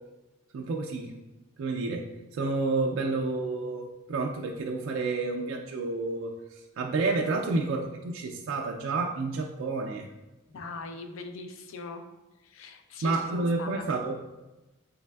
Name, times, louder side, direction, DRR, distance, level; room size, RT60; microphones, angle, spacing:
voice 1, 0.5-1.1 1.6-2.0 2.3-10.1 13.0-14.1, right 3 dB, 85° right, 0 dB, 0.3 m, -30 dB
voice 2, 10.5-12.0 12.4-13.9, left 4 dB, 75° left, 6 dB, 0.4 m, -41 dB
4.0 x 3.3 x 2.2 m, 1.1 s
head